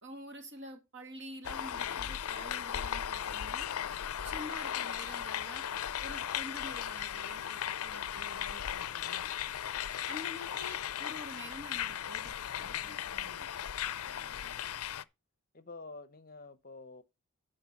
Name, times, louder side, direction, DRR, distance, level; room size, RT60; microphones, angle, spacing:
voice 1, 0.0-3.7 4.2-5.6 6.0-9.3 10.1-13.5, equal, 55° right, 2.1 m, -48 dB
sound 1, 1.4-15.0, left 10 dB, 75° left, 0.5 m, -37 dB
voice 2, 9.8-10.1 14.0-14.7 15.5-17.0, left 3 dB, 40° left, 0.7 m, -50 dB
10.5 x 4.5 x 5.7 m
head